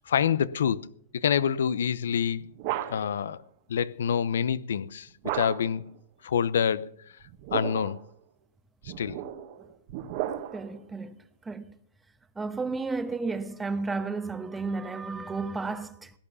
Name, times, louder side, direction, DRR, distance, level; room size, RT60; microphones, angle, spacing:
voice 1, 0.1-0.9 1.2-2.5 2.9-3.4 3.7-5.1 5.3-5.8 6.2-6.9 7.5-8.0 9.0-9.2, left 8 dB, 80° left, 0.7 m, -26 dB
sound 1, 2.1-3.3 5.2-5.9 7.2-8.0 8.8-10.8, right 12 dB, 45° right, 1.3 m, -35 dB
voice 2, 10.5-11.2 11.4-11.7 12.4-16.1, right 3 dB, 10° right, 1.0 m, -32 dB
17.0 x 8.9 x 6.9 m
hypercardioid pair, 135°, 0 cm